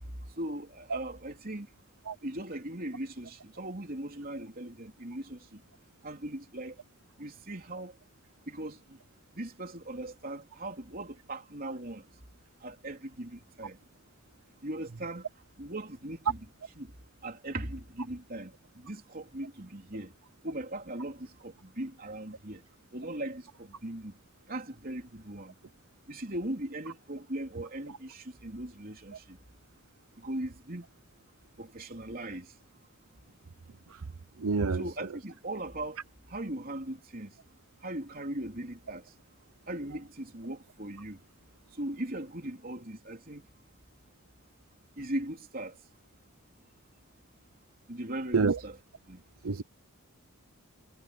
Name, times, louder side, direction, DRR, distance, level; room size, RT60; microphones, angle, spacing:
voice 1, 0.4-1.7 2.2-5.6 6.0-6.8 7.2-7.9 8.5-9.0 9.3-12.1 12.6-13.8 14.6-15.3 15.6-16.4 16.8-16.9 17.2-20.1 20.4-22.6 22.9-24.2 24.5-25.5 26.1-29.4 30.2-30.9 31.6-32.5 34.7-36.0 36.3-37.3 37.8-39.1 39.7-41.2 41.8-43.5 45.0-45.8 47.9-48.8 49.1-49.2, right 1 dB, 40° right, 3.7 m, -39 dB
voice 2, 34.4-34.8 48.3-48.6 49.4-49.6, right 4 dB, 75° right, 0.7 m, -27 dB
head